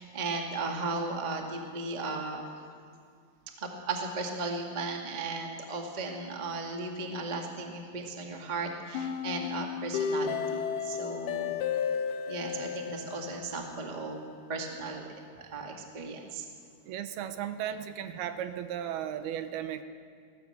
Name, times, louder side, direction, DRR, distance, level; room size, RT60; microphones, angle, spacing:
voice 1, 0.0-2.4 3.6-11.6 12.3-14.2 14.5-15.1 15.4-16.4, right 3 dB, 25° right, 1 dB, 0.9 m, -36 dB
sound 1, 8.9-14.0, left 7 dB, 70° left, 2.1 m, -33 dB
voice 2, 16.9-19.8, right 10 dB, 80° right, 9 dB, 2.8 m, -35 dB
20.0 x 16.5 x 7.9 m, 2.1 s
omnidirectional pair, 4.6 m